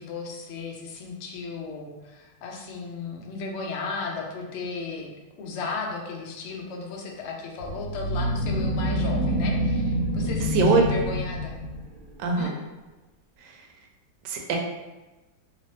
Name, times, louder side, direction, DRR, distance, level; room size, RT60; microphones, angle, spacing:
voice 1, 0.0-5.1 5.4-11.6 12.4-12.6, left 4 dB, 85° left, 0 dB, 0.6 m, -35 dB
sound 1, 7.6-12.0, equal, 60° right, 0.9 m, -26 dB
voice 2, 10.5-10.8 12.2-12.5 13.4-13.6 14.2-14.6, right 4 dB, 75° right, 1 dB, 1.2 m, -22 dB
3.2 x 3.0 x 2.9 m, 1.1 s
omnidirectional pair, 1.9 m